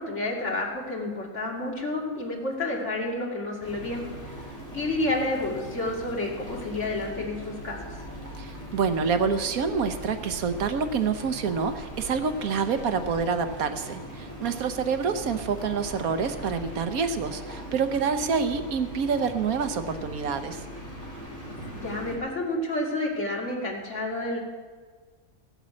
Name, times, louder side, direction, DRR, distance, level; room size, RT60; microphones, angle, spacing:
voice 1, 0.0-4.0 4.7-7.8 21.7-24.4, left 2 dB, 55° left, -2 dB, 2.8 m, -30 dB
sound 1, 3.6-22.2, right 1 dB, 10° left, 4.1 m, -40 dB
voice 2, 8.4-20.6, right 5 dB, 80° right, 8 dB, 1.4 m, -27 dB
15.5 x 8.4 x 7.7 m, 1.5 s
omnidirectional pair, 1.5 m